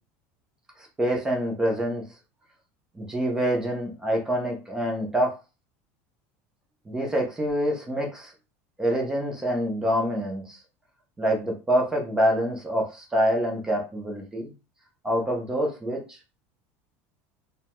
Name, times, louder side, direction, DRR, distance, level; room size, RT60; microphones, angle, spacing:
voice 1, 1.0-2.0 3.0-5.3 6.9-8.3 8.8-10.6 11.2-14.5 15.0-16.2, equal, 10° right, 1 dB, 0.5 m, -26 dB
2.6 x 2.1 x 2.9 m, 0.30 s
cardioid pair, 175°, 7 cm